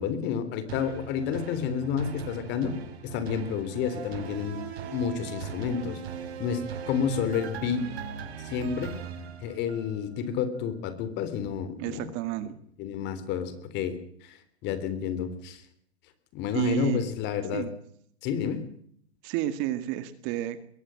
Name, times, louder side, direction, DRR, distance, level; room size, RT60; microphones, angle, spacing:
voice 1, 0.0-2.7 3.0-4.6 4.9-6.0 6.4-7.8 8.4-8.9 9.4-12.0 12.8-14.4 14.6-15.6 16.3-17.7 18.2-18.6, left 7 dB, 35° left, 13 dB, 3.6 m, -30 dB
sound 1, 0.7-10.1 10.5-10.6, right 7 dB, 70° right, 5.2 m, -39 dB
voice 2, 11.8-12.6 16.5-17.1 17.5-17.7 19.2-20.7, right 14 dB, 35° right, 12 dB, 2.0 m, -30 dB
22.5 x 17.5 x 7.7 m, 0.65 s
hypercardioid pair, 145°, 33 cm